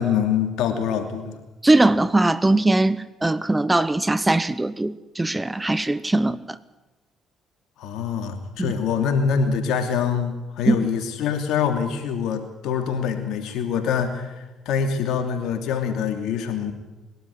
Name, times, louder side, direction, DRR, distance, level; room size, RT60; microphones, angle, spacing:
voice 1, 0.0-1.4 7.8-16.7, left 7 dB, 75° left, 2.8 m, -25 dB
voice 2, 1.6-6.6 8.6-8.7 10.7-10.8, right 2 dB, 15° right, 0.9 m, -20 dB
21.5 x 12.5 x 9.7 m
supercardioid pair, 70°, 0 cm